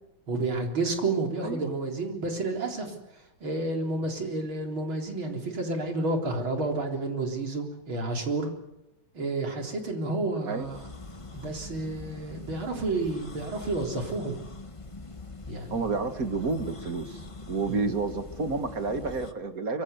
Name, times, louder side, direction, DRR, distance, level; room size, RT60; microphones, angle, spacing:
voice 1, 0.3-3.0 3.4-8.5 9.1-10.9 11.3-14.4 15.5-15.8 17.7-17.8, right 2 dB, 80° right, 3 dB, 4.6 m, -30 dB
sound 1, 10.5-19.3, left 3 dB, 20° left, 1.3 m, -43 dB
voice 2, 15.7-17.2 17.5-19.8, right 3 dB, 45° right, 8 dB, 2.2 m, -30 dB
24.5 x 24.5 x 8.2 m, 0.90 s
omnidirectional pair, 2.2 m